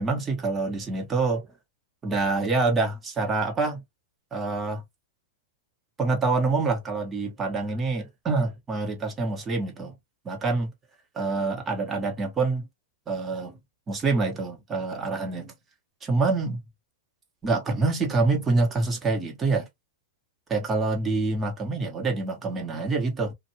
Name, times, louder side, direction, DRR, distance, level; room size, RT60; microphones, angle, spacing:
voice 1, 0.0-1.5 2.0-3.8 4.3-4.8 6.0-9.9 10.2-10.7 11.1-12.7 13.1-13.6 13.9-15.5 16.0-16.6 17.4-19.7 20.5-23.3, right 3 dB, 20° right, 1.3 m, -26 dB
2.6 x 2.5 x 2.9 m
hypercardioid pair, 115°, 0 cm